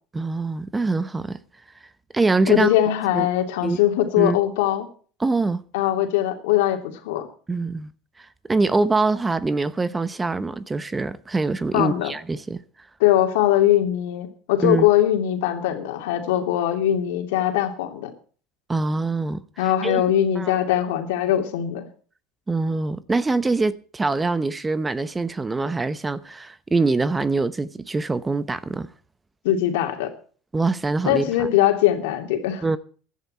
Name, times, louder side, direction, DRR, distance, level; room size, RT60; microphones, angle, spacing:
voice 1, 0.1-1.4 2.1-2.7 3.1-3.3 3.6-3.8 4.2-4.4 5.2-5.6 7.5-7.9 8.2-12.6 14.6-14.9 18.7-20.0 20.3-20.5 22.5-28.9 30.5-31.5 32.6-32.8, right 3 dB, 15° right, 0.9 m, -24 dB
voice 2, 2.5-4.9 5.7-7.3 11.7-12.1 13.0-18.1 19.6-21.9 29.4-30.1 31.1-32.6, left 12 dB, 80° left, 2.7 m, -21 dB
16.0 x 11.5 x 4.4 m
supercardioid pair, 105°, 0 cm